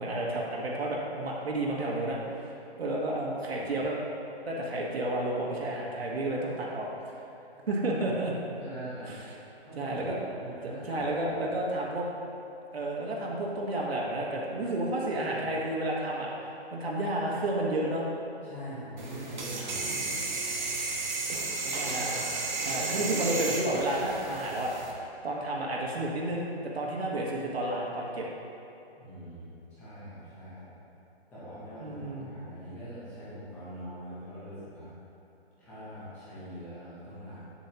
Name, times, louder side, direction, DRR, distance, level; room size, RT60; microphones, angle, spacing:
voice 1, 0.0-2.5 2.8-4.0 4.4-6.9 7.7-8.3 9.8-10.2 10.8-12.1 12.7-16.3 16.7-18.0 21.6-22.2 22.6-24.7 25.2-28.3 31.8-32.3, right 1 dB, 70° right, -3 dB, 1.5 m, -31 dB
voice 2, 8.6-9.2 9.6-11.0 11.3-11.4 15.3-15.4 18.4-20.1 29.0-30.7 31.3-34.9 35.6-37.4, equal, 5° left, -11 dB, 0.9 m, -43 dB
sound 1, 19.0-24.9, right 3 dB, 45° right, 1.1 m, -33 dB
9.0 x 7.1 x 2.9 m, 2.9 s
hypercardioid pair, 175°, 32 cm